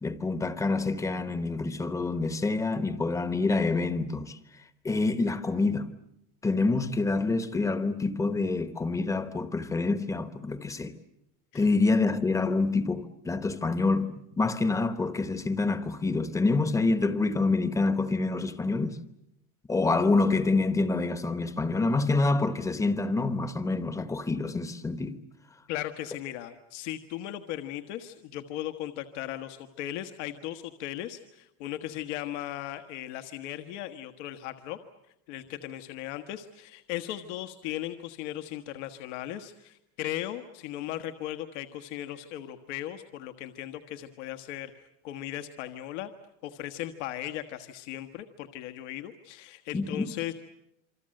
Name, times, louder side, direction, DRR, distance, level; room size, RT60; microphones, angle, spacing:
voice 1, 0.0-4.4 4.8-5.9 6.4-10.9 11.5-19.0 19.7-25.2 49.7-50.1, left 3 dB, 10° left, 1.0 m, -27 dB
voice 2, 25.7-34.8 35.3-44.7 45.0-46.1 46.4-50.3, left 13 dB, 75° left, 1.5 m, -37 dB
27.5 x 25.0 x 7.8 m
cardioid pair, 170°, 36 cm